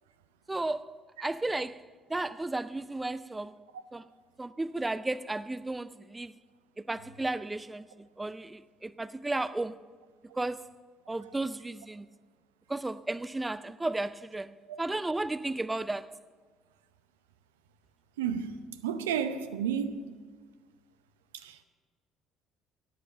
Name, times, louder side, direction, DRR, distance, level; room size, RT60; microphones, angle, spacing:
voice 1, 0.5-3.5 3.9-4.1 4.4-6.4 6.8-9.8 10.3-10.7 11.1-12.1 12.7-16.2, right 2 dB, 15° right, 0.4 m, -34 dB
voice 2, 18.2-20.0 21.4-21.6, right 8 dB, 75° right, 0.7 m, -32 dB
14.0 x 10.5 x 7.9 m
figure-of-eight pair, 50°, 0 cm